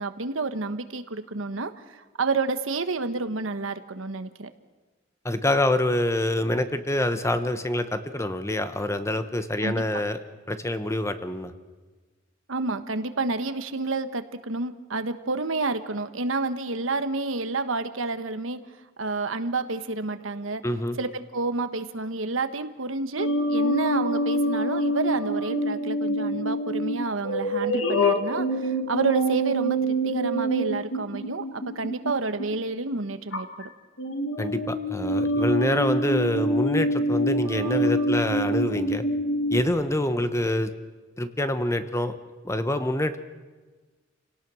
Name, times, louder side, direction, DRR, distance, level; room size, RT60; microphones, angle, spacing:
voice 1, 0.0-4.5 9.6-9.7 12.5-18.6 19.0-20.6 21.0-33.7, right 3 dB, 85° right, 10 dB, 1.2 m, -29 dB
voice 2, 5.2-10.2 10.5-11.5 20.6-21.0 34.4-39.0 39.5-40.7 41.2-42.2 42.4-43.2, left 1 dB, 15° left, 10 dB, 1.1 m, -26 dB
sound 1, 23.2-32.6 33.3-33.7 34.0-39.6, right 1 dB, 70° left, 2.3 m, -26 dB
28.5 x 18.0 x 6.3 m, 1.3 s
head